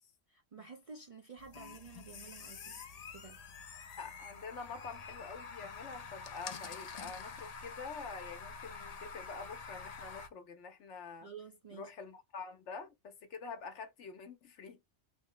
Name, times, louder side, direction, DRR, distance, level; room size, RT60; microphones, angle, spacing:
voice 1, 0.3-2.7 3.1-3.4 11.2-11.9, right 5 dB, 50° right, 0.4 m, -51 dB
sound 1, 1.4-10.3, left 5 dB, 50° left, 0.5 m, -47 dB
voice 2, 4.0-11.3 11.7-14.9, left 5 dB, 75° left, 1.1 m, -47 dB
3.5 x 2.1 x 3.7 m
omnidirectional pair, 1.2 m